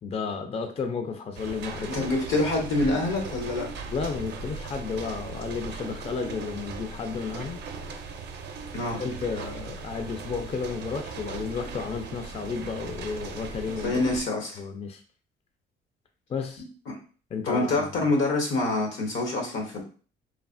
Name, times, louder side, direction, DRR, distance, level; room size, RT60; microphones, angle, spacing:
voice 1, 0.0-2.1 3.9-7.6 9.0-14.0 14.6-15.0 16.3-16.6 17.3-18.1, left 5 dB, 30° left, 6 dB, 0.3 m, -32 dB
sound 1, 1.3-14.2, right 4 dB, 60° right, 0.5 m, -38 dB
voice 2, 1.9-3.7 8.7-9.0 13.8-14.6 16.9-17.0 17.4-19.8, left 2 dB, 85° left, 1 dB, 1.0 m, -26 dB
3.2 x 2.1 x 2.4 m, 0.40 s
cardioid pair, 90°, 20 cm